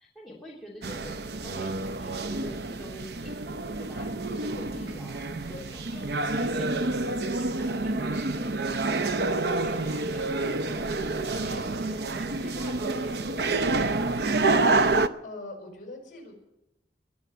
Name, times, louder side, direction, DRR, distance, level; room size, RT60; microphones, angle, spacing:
voice 1, 0.0-13.9, left 1 dB, ahead, -6 dB, 3.0 m, -46 dB
sound 1, 0.8-15.1, right 2 dB, 65° right, 0.7 m, -28 dB
voice 2, 15.2-16.3, left 2 dB, 45° left, 1 dB, 5.8 m, -42 dB
21.0 x 7.2 x 9.1 m, 0.89 s
head